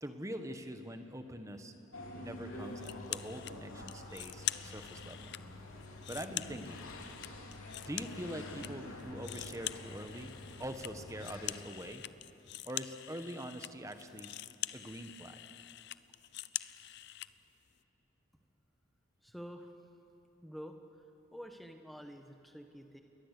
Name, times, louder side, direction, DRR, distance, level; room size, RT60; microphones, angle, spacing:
voice 1, 0.0-1.7 2.2-5.2 6.1-6.8 7.9-12.1 12.7-14.3 14.7-15.4, equal, 15° right, 7 dB, 1.3 m, -44 dB
sound 1, 1.9-11.6, left 2 dB, 85° left, 3.5 m, -47 dB
sound 2, 2.8-3.5 3.9-5.4 5.8-8.7 9.0-17.3, left 14 dB, 55° left, 0.5 m, -44 dB
voice 2, 19.2-19.7 20.4-20.8 21.3-23.0, equal, ahead, 5 dB, 1.5 m, -48 dB
29.0 x 22.5 x 8.4 m, 2.9 s
head